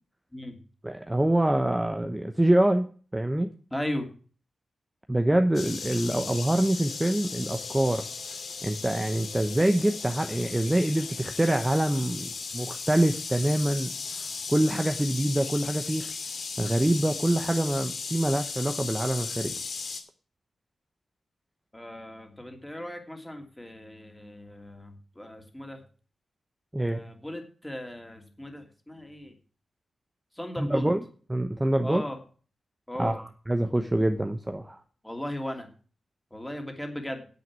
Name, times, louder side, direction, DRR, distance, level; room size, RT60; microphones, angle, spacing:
voice 1, 0.8-3.5 5.1-8.1 8.6-13.9 14.5-16.1 16.6-19.5 26.7-27.0 30.6-31.0 31.3-32.0 33.0-34.8, right 1 dB, 10° right, 6 dB, 1.0 m, -25 dB
voice 2, 3.7-4.1 21.7-25.8 26.8-29.3 30.3-30.9 31.8-32.2 32.9-33.2 35.0-35.7 36.3-37.2, left 1 dB, 10° left, 4 dB, 2.8 m, -37 dB
sound 1, 5.5-20.0, left 4 dB, 65° left, 2.5 m, -36 dB
9.5 x 8.2 x 7.4 m, 0.40 s
cardioid pair, 85°, 0 cm